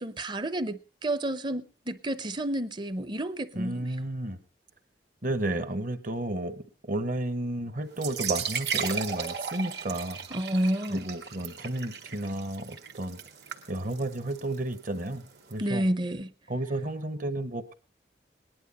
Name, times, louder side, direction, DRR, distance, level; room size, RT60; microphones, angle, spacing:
voice 1, 0.0-3.9 10.3-11.1 15.6-16.3, right 1 dB, 25° right, 0.6 m, -30 dB
voice 2, 3.5-4.4 5.2-10.2 10.9-13.2 13.7-15.2 15.5-15.8 16.5-17.7, right 1 dB, 50° right, 1.0 m, -32 dB
sound 1, 7.9-15.5, right 6 dB, 70° right, 1.6 m, -36 dB
18.5 x 11.0 x 4.1 m
head